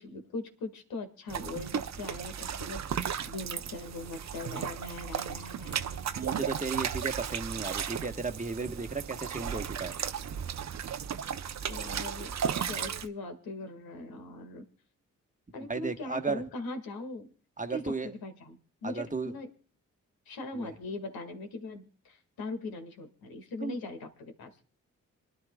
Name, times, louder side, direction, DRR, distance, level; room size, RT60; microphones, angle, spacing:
voice 1, 0.0-6.1 11.7-14.7 15.5-17.3 17.7-19.5 20.3-24.6, left 2 dB, 75° left, 7 dB, 1.9 m, -40 dB
sound 1, 1.3-13.1, right 8 dB, 45° right, 0.7 m, -35 dB
voice 2, 6.1-9.9 15.7-16.4 17.6-18.1 18.8-19.3 20.6-20.7 23.6-23.8, right 4 dB, 20° right, 7 dB, 1.3 m, -34 dB
26.5 x 10.5 x 2.3 m, 0.39 s
hypercardioid pair, 45°, 37 cm